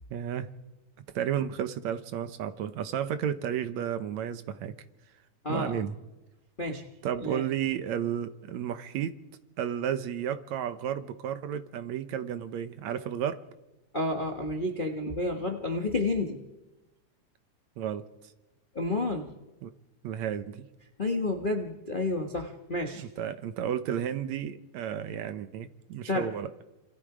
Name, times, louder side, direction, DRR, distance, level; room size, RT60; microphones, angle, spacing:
voice 1, 0.1-0.5 1.1-4.7 5.5-6.0 7.0-9.2 9.6-13.4 17.8-18.1 19.6-19.7 20.0-20.7 23.0-26.5, right 9 dB, 70° right, 2.1 m, -32 dB
voice 2, 5.4-5.8 6.6-6.8 7.2-7.4 13.9-16.4 18.7-19.3 21.0-23.0 26.0-26.3, left 2 dB, 75° left, 0.4 m, -30 dB
27.5 x 27.0 x 5.0 m
omnidirectional pair, 3.6 m